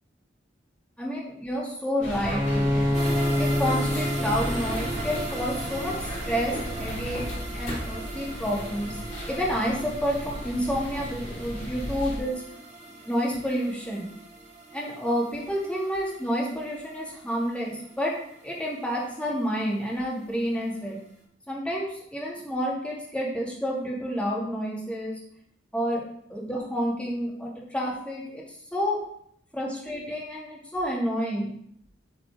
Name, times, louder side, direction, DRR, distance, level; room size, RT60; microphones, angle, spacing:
voice 1, 1.0-2.9 3.4-6.0 6.2-7.2 7.5-9.0 9.3-12.4 13.0-14.1 14.7-18.1 18.4-21.0 21.5-25.2 25.7-26.0 26.3-28.4 28.7-29.0 29.5-31.5, equal, 5° left, -4 dB, 2.4 m, -29 dB
sound 1, 2.0-12.2, equal, 40° left, 2.7 m, -35 dB
Bowed string instrument, 2.3-5.9, left 1 dB, 20° right, 2.7 m, -27 dB
sound 2, 2.9-20.0 20.3-20.4 20.9-21.0, right 3 dB, 40° right, 2.5 m, -40 dB
9.3 x 4.9 x 4.9 m, 0.69 s
head